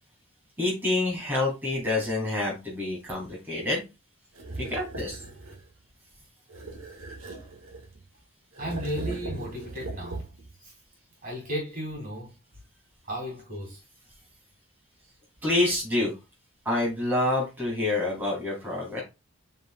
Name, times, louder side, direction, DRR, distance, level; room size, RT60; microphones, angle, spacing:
voice 1, 0.6-3.8 4.6-5.2 15.4-16.1 16.7-19.0, left 2 dB, 10° right, 3.5 m, -27 dB
sound 1, 4.4-5.7 6.5-8.0 8.5-10.5, right 2 dB, 85° right, 2.2 m, -38 dB
voice 2, 7.2-7.5 8.6-10.3 10.6-10.7 11.2-12.3 13.0-13.8, equal, 40° right, 3.6 m, -35 dB
8.4 x 5.5 x 2.5 m
head